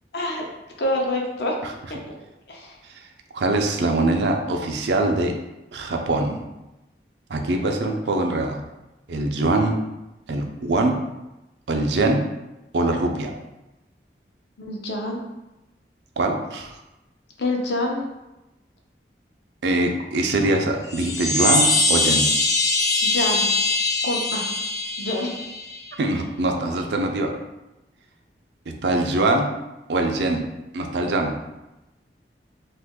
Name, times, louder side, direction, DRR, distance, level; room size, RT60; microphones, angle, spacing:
voice 1, 0.1-0.5 0.8-1.5 2.5-2.8 14.6-15.2 17.4-18.1 23.0-23.5 24.0-24.5 25.0-25.3, left 1 dB, 70° left, 0 dB, 0.6 m, -26 dB
voice 2, 3.3-5.3 5.7-6.4 7.3-8.6 9.1-9.7 10.3-11.0 11.7-12.2 12.7-13.3 16.2-16.8 19.6-22.2 26.0-27.3 28.7-29.5 29.9-30.4 30.7-31.3, right 2 dB, 80° right, 3 dB, 0.5 m, -23 dB
sound 1, 20.8-25.9, left 2 dB, 20° left, 0.5 m, -22 dB
3.0 x 2.5 x 3.5 m, 0.97 s
head